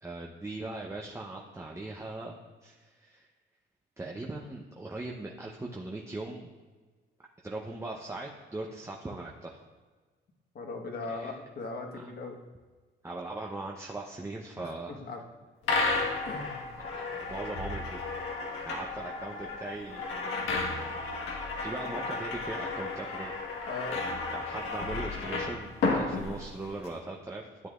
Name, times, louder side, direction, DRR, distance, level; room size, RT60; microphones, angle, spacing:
voice 1, 0.0-3.3 4.0-6.5 7.4-9.6 11.1-11.4 11.9-12.1 13.0-14.9 16.9-18.0 18.6-20.1 20.5-21.0 21.6-23.3 24.3-27.7, right 2 dB, 15° right, -1 dB, 0.8 m, -40 dB
voice 2, 10.5-12.4 14.6-14.7 15.0-15.2 16.2-16.7 23.7-24.0, left 3 dB, 55° left, 2 dB, 1.4 m, -38 dB
sound 1, 15.6-26.9, left 3 dB, 85° left, 1.6 m, -33 dB
12.5 x 7.9 x 2.5 m, 1.4 s
cardioid pair, 90°, 20 cm